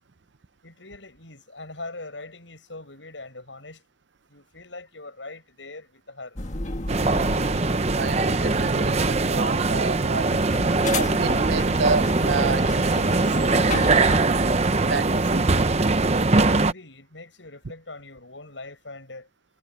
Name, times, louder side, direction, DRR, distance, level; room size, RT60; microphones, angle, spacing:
voice 1, 0.6-3.8 4.3-6.4 16.3-19.3, left 2 dB, 80° left, 7.6 m, -41 dB
sound 1, 6.4-14.7, left 2 dB, 40° left, 1.7 m, -33 dB
sound 2, 6.9-16.7, right 3 dB, 35° right, 0.8 m, -22 dB
voice 2, 8.0-10.4 10.9-14.1 14.7-15.5, right 4 dB, 70° right, 0.7 m, -30 dB
head